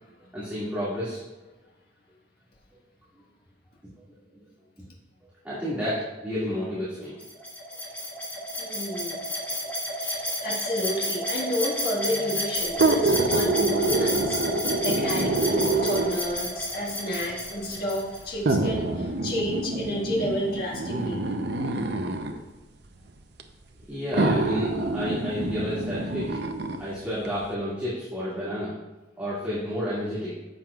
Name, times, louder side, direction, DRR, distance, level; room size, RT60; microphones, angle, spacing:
voice 1, 0.3-1.2 5.4-7.1 23.9-26.4 26.8-28.7 29.2-30.3, equal, 10° right, -11 dB, 2.1 m, -30 dB
sound 1, 7.2-18.2, equal, 10° left, 1.8 m, -31 dB
voice 2, 8.6-9.2 10.0-21.2, equal, 55° left, -3 dB, 1.6 m, -30 dB
sound 2, 12.7-16.4 17.3-17.4 18.5-22.4 23.4-23.5 24.1-26.8 27.2-27.3, right 2 dB, 60° right, 0.6 m, -26 dB
10.5 x 7.4 x 2.4 m, 1.1 s
head